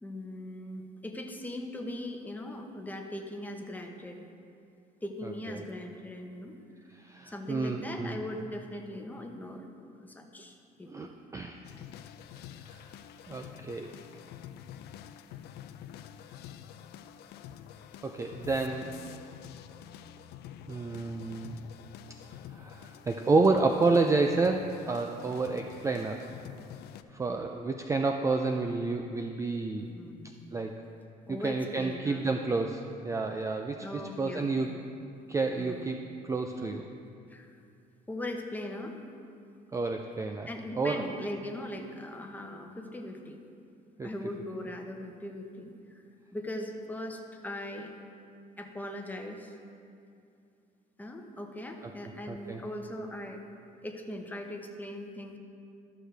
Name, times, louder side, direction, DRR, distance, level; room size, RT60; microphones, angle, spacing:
voice 1, 0.0-4.2 5.0-6.5 7.3-9.6 10.0-11.1 29.8-30.3 31.3-32.3 33.8-34.7 35.5-35.9 37.3-37.6 38.1-39.0 40.4-43.4 44.0-46.0 46.3-47.9 48.6-49.5 51.0-53.4 53.8-55.4, left 1 dB, 10° left, 3 dB, 0.9 m, -40 dB
voice 2, 7.0-8.2 10.8-11.1 11.3-11.6 12.6-12.8 13.3-13.9 18.0-18.9 20.7-21.6 22.5-26.3 27.1-29.9 30.5-30.8 31.3-34.7 35.3-36.0 36.2-36.8 39.7-40.5 40.8-41.0 44.0-44.1 52.3-52.6, right 3 dB, 20° right, 4 dB, 0.4 m, -29 dB
sound 1, 11.6-27.0, left 10 dB, 75° left, 0.4 m, -47 dB
13.0 x 6.4 x 3.4 m, 2.5 s
cardioid pair, 110°, 17 cm